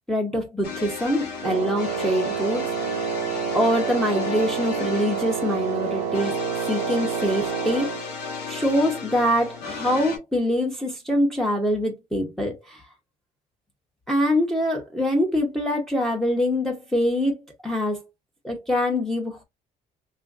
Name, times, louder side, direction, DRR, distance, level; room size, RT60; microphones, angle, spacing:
voice 1, 0.1-2.7 3.5-6.4 6.7-8.1 8.5-12.8 14.1-18.0 18.4-19.4, equal, ahead, 0.7 m, -24 dB
sound 1, 0.6-10.2, left 5 dB, 80° left, 0.9 m, -34 dB
Wind instrument woodwind instrument, 1.4-8.1, right 8 dB, 80° right, 0.6 m, -28 dB
3.0 x 2.4 x 2.4 m
cardioid pair, 110°, 17 cm